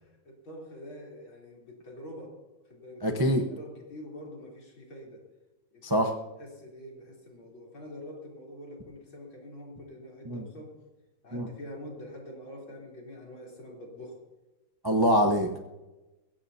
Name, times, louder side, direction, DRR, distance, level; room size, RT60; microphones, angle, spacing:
voice 1, 0.0-2.4 2.7-5.3 5.7-6.1 6.4-10.8 11.2-14.2, left 1 dB, 70° left, -2 dB, 4.5 m, -45 dB
voice 2, 3.0-3.4 5.8-6.1 10.3-10.4 11.3-11.5 14.8-15.6, equal, 30° right, 3 dB, 0.4 m, -24 dB
21.5 x 16.0 x 2.8 m, 1.1 s
omnidirectional pair, 2.3 m